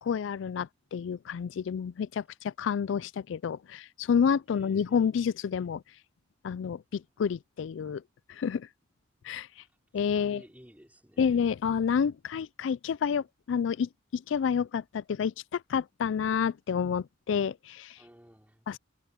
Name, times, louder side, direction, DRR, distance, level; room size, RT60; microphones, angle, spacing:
voice 1, 0.0-5.8 6.4-8.0 8.3-8.7 9.2-9.5 9.9-10.4 11.2-18.0 18.7-18.8, left 7 dB, 70° left, 0.3 m, -29 dB
voice 2, 4.5-5.1 9.5-9.6 10.1-11.5 18.0-18.6, equal, 10° right, 4.8 m, -54 dB
head